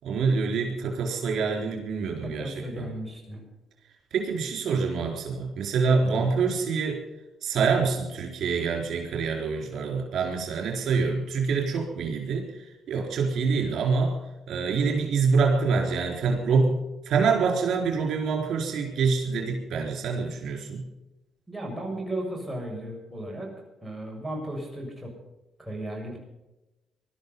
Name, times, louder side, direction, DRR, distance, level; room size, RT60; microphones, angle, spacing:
voice 1, 0.0-2.9 4.1-7.0 7.4-14.2 14.5-16.8 17.1-20.8, right 5 dB, 70° right, 1 dB, 4.0 m, -26 dB
voice 2, 2.2-3.4 6.1-6.3 21.5-23.5 23.8-25.1 25.6-26.2, right 1 dB, 5° right, -1 dB, 7.0 m, -35 dB
20.0 x 13.0 x 5.5 m, 1.0 s
cardioid pair, 90°, 0 cm